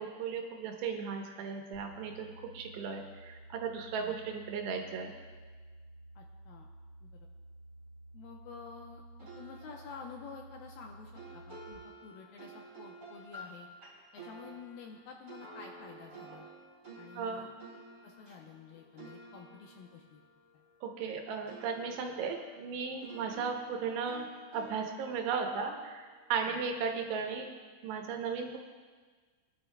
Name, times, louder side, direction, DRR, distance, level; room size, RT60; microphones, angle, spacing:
voice 1, 0.0-5.1 17.2-17.5 20.8-24.3 24.5-27.5 27.8-28.6, right 5 dB, 80° right, 3 dB, 3.2 m, -36 dB
sound 1, 1.7-11.7, right 1 dB, 65° right, 1.7 m, -53 dB
voice 2, 6.2-6.7 7.0-7.3 8.1-9.0 9.4-13.7 14.1-16.5 17.0-17.5 18.0-20.2 26.4-26.6, left 6 dB, 75° left, 0 dB, 2.3 m, -50 dB
sound 2, 9.2-21.2 21.5-26.7, right 2 dB, 20° right, 3.8 m, -52 dB
22.0 x 11.0 x 2.3 m, 1.5 s
omnidirectional pair, 4.8 m